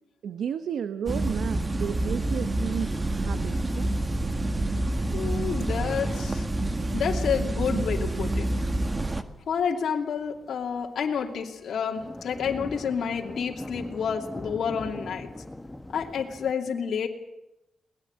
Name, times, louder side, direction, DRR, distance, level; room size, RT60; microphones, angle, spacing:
voice 1, 0.2-3.9 5.2-5.4 7.6-7.8, right 8 dB, 85° right, 12 dB, 1.0 m, -33 dB
sound 1, 1.1-9.2, right 1 dB, 20° right, 1.7 m, -28 dB
sound 2, 1.7-1.8 2.1-9.3 9.6-9.8 10.2-16.5, left 1 dB, 10° left, 1.1 m, -42 dB
voice 2, 5.1-6.5 6.9-8.5 9.5-15.3 15.9-17.1, left 7 dB, 75° left, 1 dB, 2.8 m, -29 dB
22.5 x 19.5 x 8.9 m, 0.90 s
cardioid pair, 105°, 0 cm